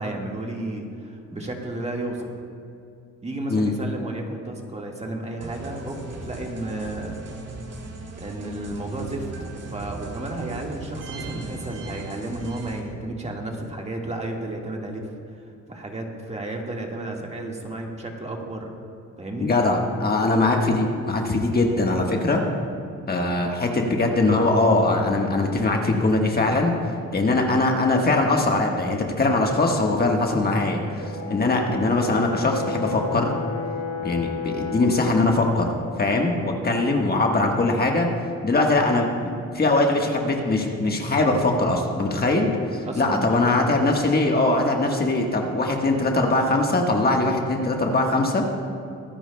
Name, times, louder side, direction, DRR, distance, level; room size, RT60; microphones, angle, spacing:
voice 1, 0.0-2.3 3.2-7.2 7.7-7.8 8.2-9.3 9.7-15.0 15.7-18.7 19.2-19.5 42.9-43.3, right 2 dB, 20° right, 0 dB, 1.7 m, -32 dB
sound 1, 5.4-12.8, right 3 dB, 55° right, 2.3 m, -37 dB
voice 2, 19.4-22.4 23.1-26.7 27.1-33.3 34.0-38.1 38.4-39.1 39.5-48.4, left 2 dB, 30° left, 1 dB, 1.4 m, -21 dB
Brass instrument, 31.0-35.2, left 5 dB, 85° left, 3.0 m, -32 dB
23.5 x 10.5 x 2.2 m, 2.5 s
cardioid pair, 90°, 30 cm